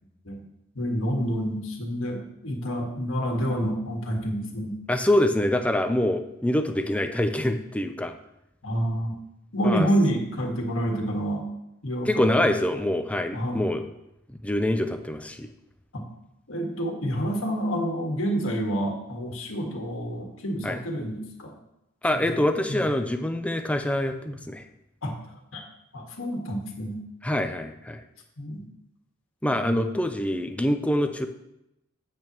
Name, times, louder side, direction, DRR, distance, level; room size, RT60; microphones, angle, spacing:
voice 1, 0.7-4.8 8.6-9.2 9.5-11.4 11.8-12.5 13.3-13.6 15.9-16.0 16.5-21.5 22.1-22.4 22.7-22.9 25.0-25.2 25.5-25.6 25.9-27.0 28.4-28.7 29.5-30.0, equal, 70° left, 1 dB, 1.7 m, -28 dB
voice 2, 4.9-8.1 9.6-9.9 12.1-13.9 14.4-15.5 20.6-20.8 22.0-24.6 27.2-28.0 29.4-31.3, left 1 dB, 5° left, 6 dB, 0.5 m, -25 dB
8.9 x 8.5 x 3.0 m, 0.85 s
head